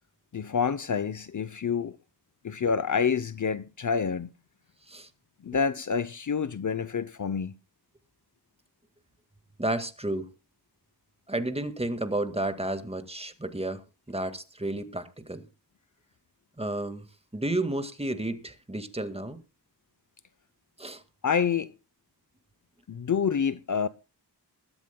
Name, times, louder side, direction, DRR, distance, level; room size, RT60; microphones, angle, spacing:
voice 1, 0.3-2.0 2.4-4.3 5.4-7.5 21.2-21.7 22.9-23.9, left 6 dB, 45° left, 0.8 m, -27 dB
voice 2, 9.6-10.3 11.3-13.8 14.1-15.5 16.6-17.1 17.3-19.4 20.8-21.0, right 1 dB, 15° right, 1.9 m, -31 dB
21.5 x 13.0 x 2.3 m
cardioid pair, 70°, 41 cm